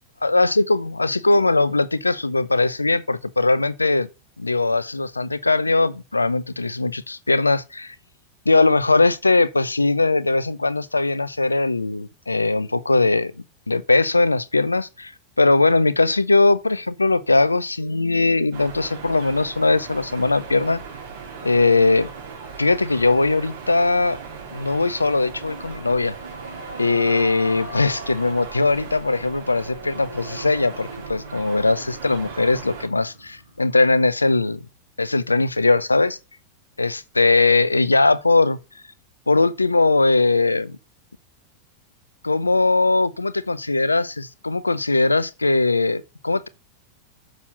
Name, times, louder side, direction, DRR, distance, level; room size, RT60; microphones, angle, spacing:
voice 1, 0.2-4.1 4.4-7.9 8.5-13.3 13.7-15.1 15.4-20.8 21.4-22.1 22.6-24.2 24.5-26.1 26.8-34.6 35.0-36.2 36.8-38.6 39.3-40.8 42.2-46.5, left 3 dB, 80° left, 0.6 m, -20 dB
sound 1, 18.5-32.9, right 5 dB, 60° right, 3.3 m, -38 dB
sound 2, 25.4-34.8, equal, 90° right, 2.8 m, -41 dB
6.9 x 6.3 x 5.8 m
figure-of-eight pair, 90°, 0 cm